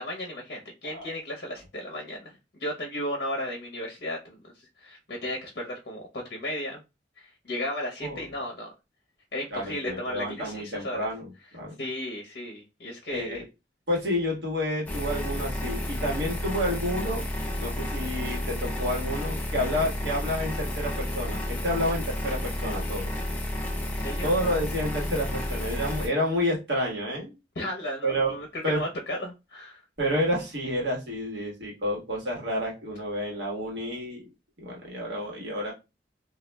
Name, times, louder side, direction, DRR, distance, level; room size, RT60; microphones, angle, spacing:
voice 1, 0.0-4.4 4.8-6.8 7.2-8.7 9.3-11.1 11.8-13.4 24.0-24.5 27.6-29.8, left 1 dB, 60° left, 0 dB, 0.6 m, -35 dB
voice 2, 9.5-11.7 13.1-13.4 13.9-17.3 17.6-23.1 24.2-27.3 28.0-28.4 28.6-28.8 30.0-34.2 34.6-35.7, equal, 75° right, -2 dB, 1.1 m, -29 dB
sound 1, 14.9-26.1, left 1 dB, 10° left, 0.4 m, -31 dB
2.3 x 2.0 x 3.2 m, 0.26 s
head